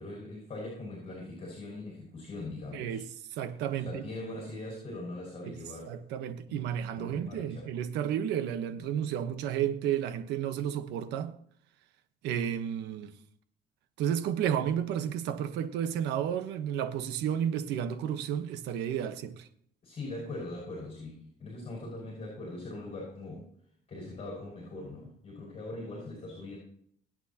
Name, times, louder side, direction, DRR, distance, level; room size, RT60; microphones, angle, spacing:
voice 1, 0.0-3.0 3.9-5.9 6.5-6.6 7.0-7.7 19.8-23.4 23.9-26.6, left 2 dB, 35° left, 5.9 m, -41 dB
voice 2, 2.7-4.1 5.4-5.6 5.9-11.3 12.2-13.1 14.0-19.5, right 9 dB, 90° right, 1.2 m, -32 dB
23.5 x 9.1 x 2.9 m
cardioid pair, 110°, 17 cm